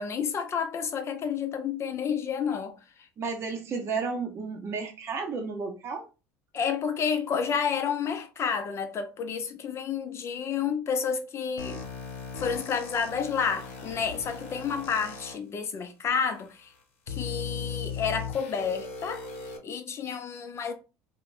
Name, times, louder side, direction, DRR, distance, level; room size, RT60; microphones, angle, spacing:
voice 1, 0.0-2.8 6.5-11.8 12.4-16.7 17.1-19.3 19.6-20.7, left 6 dB, 40° left, 0.6 m, -30 dB
voice 2, 3.2-6.1, right 4 dB, 40° right, 0.6 m, -32 dB
sound 1, 11.6-15.3 16.1-16.2 17.1-19.6, left 5 dB, 85° left, 0.7 m, -38 dB
3.1 x 2.1 x 2.4 m
supercardioid pair, 85°, 7 cm